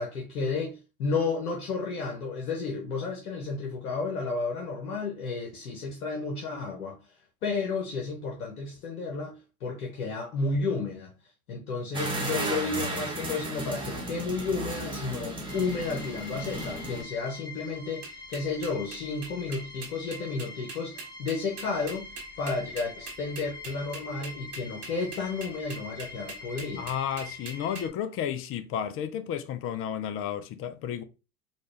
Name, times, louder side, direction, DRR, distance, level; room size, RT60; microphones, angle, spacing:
voice 1, 0.0-22.1 22.4-26.9, left 4 dB, 75° left, 1.0 m, -32 dB
sound 1, 11.9-17.0, right 1 dB, 10° right, 1.1 m, -34 dB
sound 2, 15.5-27.9, left 3 dB, 10° left, 1.0 m, -44 dB
sound 3, 18.0-27.8, right 3 dB, 90° right, 1.3 m, -42 dB
voice 2, 26.8-31.0, left 9 dB, 30° left, 0.5 m, -32 dB
4.2 x 2.4 x 3.2 m
hypercardioid pair, 80°, 45 cm